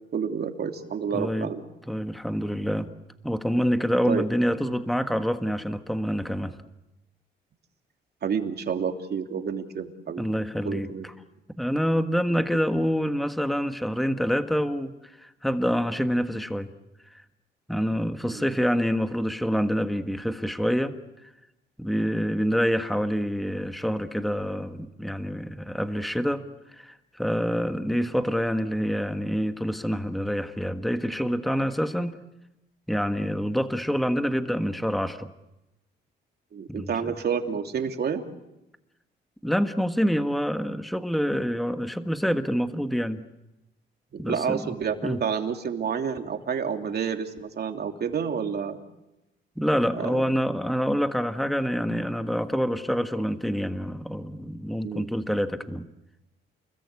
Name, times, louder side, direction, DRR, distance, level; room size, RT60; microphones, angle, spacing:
voice 1, 0.1-1.6 4.1-4.2 8.2-10.2 10.6-11.1 18.3-18.5 36.5-38.2 44.1-48.8 50.0-50.3 54.8-55.1, right 7 dB, 55° right, 5 dB, 3.0 m, -29 dB
voice 2, 1.1-1.5 1.9-2.9 3.2-6.5 10.2-10.9 11.6-16.7 17.7-21.0 21.2-21.3 21.8-32.2 32.9-35.3 36.7-37.1 39.4-43.2 44.2-44.7 45.0-45.2 49.6-55.9, equal, ahead, 8 dB, 1.5 m, -27 dB
30.0 x 21.5 x 8.5 m, 0.94 s
cardioid pair, 90°, 20 cm